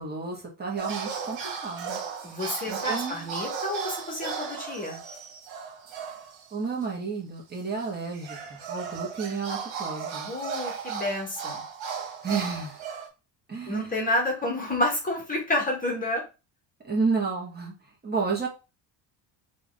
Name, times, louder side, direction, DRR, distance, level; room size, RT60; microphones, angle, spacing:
voice 1, 0.0-2.0 2.7-3.3 6.5-10.3 12.2-12.8 13.5-14.1 16.8-17.7 18.0-18.5, right 4 dB, 20° right, -2 dB, 1.9 m, -31 dB
sound 1, 0.8-6.5 6.8-6.9 7.8-13.1, right 6 dB, 75° right, 1.7 m, -36 dB
voice 2, 2.2-5.0 10.3-11.6 13.7-16.2, left 1 dB, 15° left, 0 dB, 2.0 m, -29 dB
3.8 x 3.5 x 3.9 m, 0.30 s
cardioid pair, 135°, 47 cm